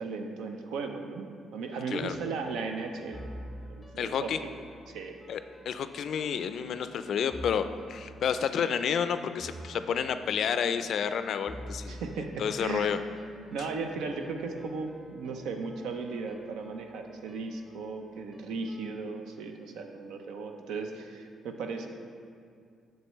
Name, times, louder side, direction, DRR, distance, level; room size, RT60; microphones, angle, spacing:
voice 1, 0.0-3.3 3.7-4.3 4.9-5.2 11.9-13.0 13.5-21.9, right 4 dB, 85° right, 4 dB, 0.6 m, -36 dB
sound 1, 2.0-19.0, equal, 5° right, 0.7 m, -49 dB
voice 2, 4.0-4.4 5.3-5.4 5.7-12.0 12.4-13.0, left 7 dB, 65° left, 11 dB, 0.3 m, -30 dB
7.7 x 6.6 x 3.1 m, 2.3 s
cardioid pair, 90°, 0 cm